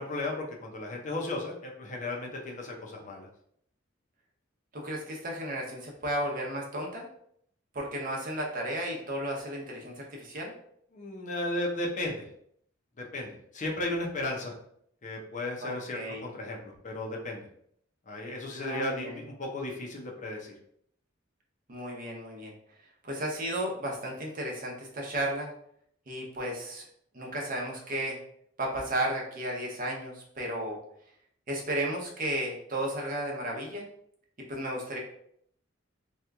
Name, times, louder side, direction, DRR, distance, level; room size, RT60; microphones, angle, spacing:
voice 1, 0.0-3.3 10.9-12.3 13.0-14.5 15.0-17.5 18.1-20.5, left 2 dB, 40° left, -1 dB, 0.6 m, -35 dB
voice 2, 4.7-7.0 7.7-10.5 15.6-16.3 18.6-19.2 21.7-22.5 23.0-25.5 26.1-26.8 27.1-28.2 28.6-30.8 31.5-33.9 34.5-35.0, right 1 dB, 45° right, -1 dB, 0.8 m, -34 dB
2.8 x 2.4 x 3.4 m, 0.67 s
head